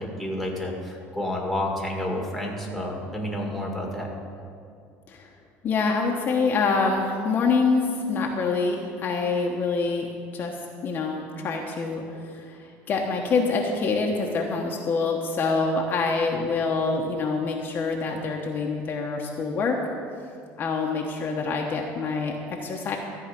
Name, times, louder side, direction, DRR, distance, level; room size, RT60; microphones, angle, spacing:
voice 1, 0.0-4.1, left 1 dB, ahead, -1 dB, 2.1 m, -30 dB
voice 2, 5.6-19.8 20.6-23.0, left 4 dB, 35° left, 0 dB, 1.1 m, -26 dB
14.0 x 4.8 x 9.1 m, 2.4 s
cardioid pair, 135°, 5 cm